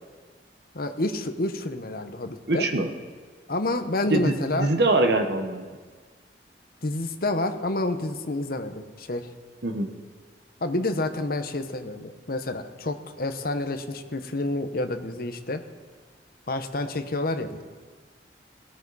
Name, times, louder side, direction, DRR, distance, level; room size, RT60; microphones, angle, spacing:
voice 1, 0.7-2.7 3.5-4.7 6.8-9.3 10.6-15.6 16.5-17.6, left 2 dB, 55° left, 7 dB, 1.0 m, -29 dB
voice 2, 2.5-2.9 4.1-5.7 9.6-9.9, right 2 dB, 65° right, 4 dB, 1.2 m, -23 dB
17.5 x 15.0 x 4.2 m, 1.5 s
head